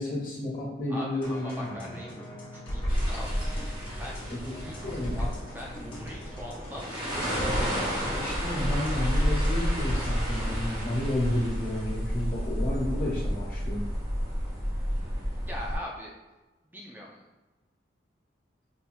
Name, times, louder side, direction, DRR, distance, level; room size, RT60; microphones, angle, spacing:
voice 1, 0.0-1.8 4.3-5.3 5.8-6.0 8.0-13.8, left 1 dB, 45° left, -6 dB, 1.4 m, -32 dB
voice 2, 0.9-3.6 4.0-7.8 15.4-16.2 16.6-17.2, left 1 dB, 10° right, -2 dB, 0.4 m, -42 dB
sound 1, 1.2-10.6, equal, 25° left, 1.0 m, -38 dB
sound 2, 2.9-15.8, equal, 25° right, 1.1 m, -30 dB
4.2 x 2.8 x 2.3 m, 1.1 s
head